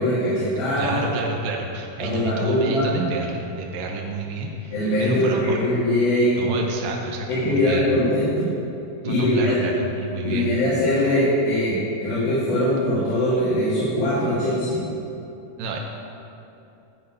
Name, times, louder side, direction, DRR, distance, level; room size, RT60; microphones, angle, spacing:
voice 1, 0.0-1.0 2.0-3.0 4.7-6.5 7.3-8.5 9.1-9.6 10.2-14.8, left 1 dB, 85° left, -10 dB, 4.2 m, -22 dB
voice 2, 0.8-5.6 6.4-7.9 9.0-10.5 15.6-15.8, right 2 dB, 75° right, 0 dB, 2.5 m, -29 dB
13.0 x 5.0 x 8.4 m, 2.7 s
omnidirectional pair, 4.1 m